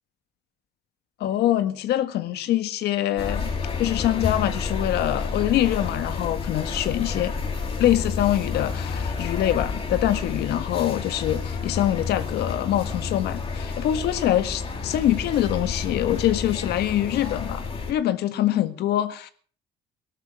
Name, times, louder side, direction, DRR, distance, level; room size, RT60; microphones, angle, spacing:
voice 1, 1.2-3.5 3.8-7.4 7.8-19.3, left 12 dB, 75° left, 11 dB, 1.7 m, -24 dB
sound 1, 3.2-17.9, left 5 dB, 35° left, 5.0 m, -30 dB
18.0 x 12.5 x 4.8 m, 0.44 s
cardioid pair, 110°, 17 cm